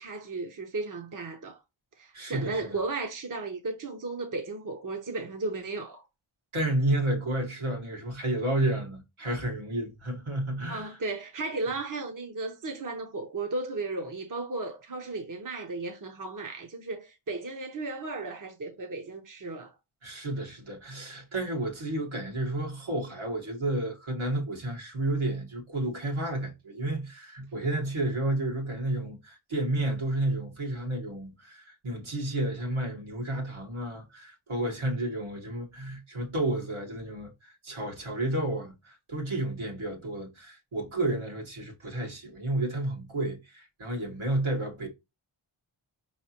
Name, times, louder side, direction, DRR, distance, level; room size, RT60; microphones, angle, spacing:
voice 1, 0.0-1.6 2.0-6.0 10.7-19.7, right 3 dB, 40° right, 0.9 m, -35 dB
voice 2, 2.1-2.8 6.5-11.0 20.0-44.9, right 1 dB, 70° right, 1.5 m, -31 dB
4.9 x 3.2 x 2.8 m
wide cardioid pair, 60°, 49 cm